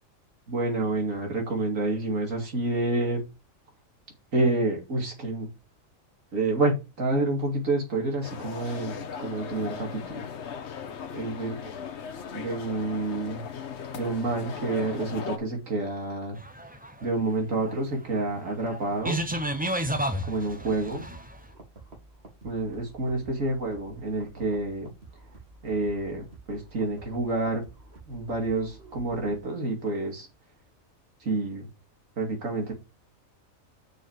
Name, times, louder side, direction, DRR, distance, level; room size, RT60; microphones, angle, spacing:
voice 1, 0.5-3.2 4.3-5.5 6.3-10.3 11.1-11.7 12.3-13.5 13.9-16.4 17.0-19.3 20.2-21.1 22.4-24.9 25.6-27.7 28.1-30.3 31.2-31.7 32.2-32.7, right 2 dB, 75° right, 2.8 m, -28 dB
sound 1, 8.2-15.4, left 7 dB, 60° left, 1.1 m, -38 dB
sound 2, 16.3-21.4, right 1 dB, 10° right, 0.4 m, -31 dB
sound 3, 19.0-29.4, right 3 dB, 50° right, 2.7 m, -50 dB
6.3 x 5.3 x 5.1 m
omnidirectional pair, 1.4 m